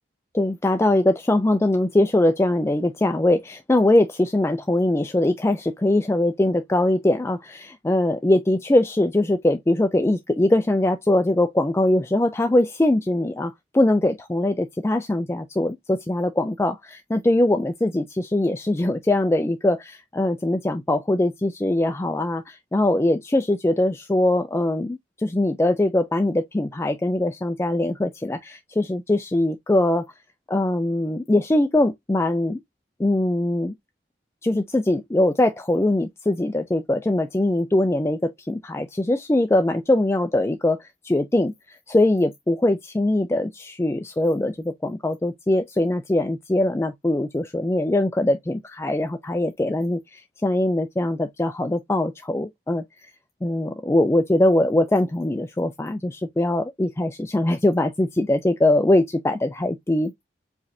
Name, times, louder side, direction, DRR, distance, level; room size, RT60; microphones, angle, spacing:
voice 1, 0.3-30.1 30.5-32.6 33.0-33.7 34.4-53.1 53.4-60.2, left 1 dB, 15° left, 0.4 m, -22 dB
4.9 x 3.2 x 2.6 m
head